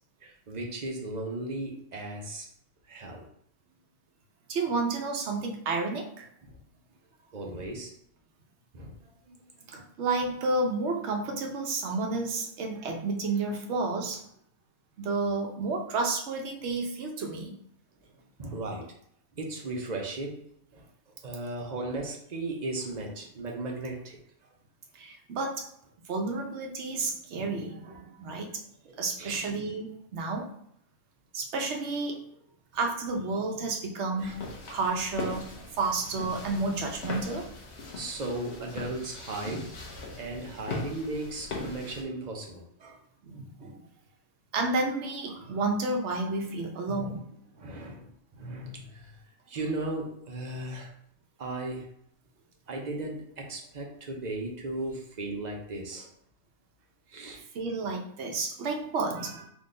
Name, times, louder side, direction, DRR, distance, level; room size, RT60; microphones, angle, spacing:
voice 1, 0.2-2.5 2.9-3.3 6.4-6.5 7.3-7.9 8.7-9.4 9.6-9.9 18.4-18.9 19.3-20.4 20.7-20.9 21.2-24.2 28.9-29.5 34.1-34.3 37.9-39.7 40.2-43.0 46.9-47.2 47.6-49.2 49.5-50.9 51.4-51.9 52.7-56.1 57.1-57.4, right 2 dB, 40° right, 1 dB, 0.7 m, -36 dB
voice 2, 4.5-6.3 9.7-14.2 15.0-17.5 24.9-25.7 26.1-28.6 29.0-30.5 31.3-32.2 32.7-37.5 39.4-39.7 43.2-43.8 44.5-47.2 47.5-47.7 57.5-59.5, right 3 dB, 60° right, 1 dB, 1.0 m, -31 dB
sound 1, 34.2-42.0, left 3 dB, 55° left, 1.1 m, -40 dB
3.8 x 3.0 x 3.8 m, 0.69 s
omnidirectional pair, 1.5 m